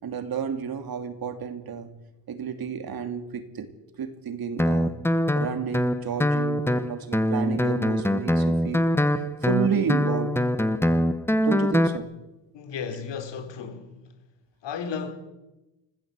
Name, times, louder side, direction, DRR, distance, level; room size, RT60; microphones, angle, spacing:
voice 1, 0.0-2.0 2.3-3.7 4.0-5.0 5.4-8.9 9.4-10.3 11.4-12.2, right 7 dB, 55° right, 2.7 m, -31 dB
Guitar, 4.6-12.0, left 1 dB, 5° left, 1.1 m, -23 dB
voice 2, 12.5-14.0 14.6-15.1, left 6 dB, 70° left, 3.8 m, -34 dB
25.5 x 16.0 x 8.3 m
cardioid pair, 130°, 44 cm